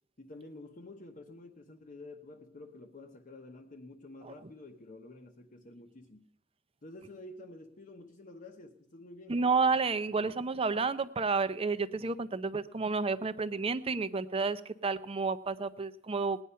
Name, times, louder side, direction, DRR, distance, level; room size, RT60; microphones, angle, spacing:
voice 1, 0.2-6.3 6.8-9.4, left 2 dB, 45° left, 3 dB, 0.9 m, -50 dB
voice 2, 9.3-16.4, right 4 dB, 30° right, 13 dB, 0.6 m, -31 dB
18.5 x 9.7 x 5.6 m, 0.81 s
head